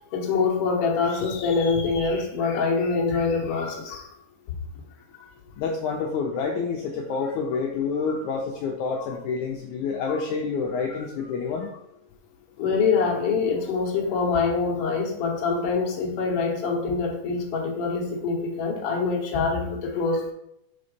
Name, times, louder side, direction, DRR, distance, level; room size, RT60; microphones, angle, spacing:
voice 1, 0.0-4.1 5.2-5.3 8.1-8.2 9.0-9.1 10.1-10.2 12.6-20.3, left 4 dB, 65° left, 0 dB, 1.5 m, -25 dB
voice 2, 5.6-11.7, left 5 dB, 80° left, 1 dB, 1.7 m, -28 dB
5.7 x 4.0 x 5.1 m, 0.80 s
omnidirectional pair, 4.2 m